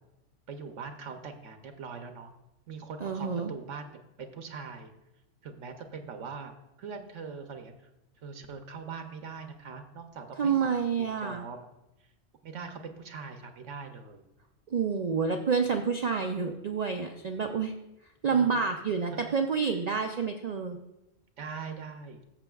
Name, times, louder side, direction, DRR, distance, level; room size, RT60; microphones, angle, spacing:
voice 1, 0.5-2.3 2.7-4.9 5.4-6.5 6.8-7.9 8.2-11.7 12.4-14.2 15.4-15.5 18.3-18.6 19.1-19.4 21.4-22.2, right 5 dB, 75° right, 6 dB, 1.0 m, -42 dB
voice 2, 3.0-3.5 10.4-11.4 14.7-17.7 18.2-20.8, right 6 dB, 60° right, 5 dB, 0.4 m, -28 dB
13.5 x 6.8 x 2.3 m, 0.91 s
omnidirectional pair, 1.3 m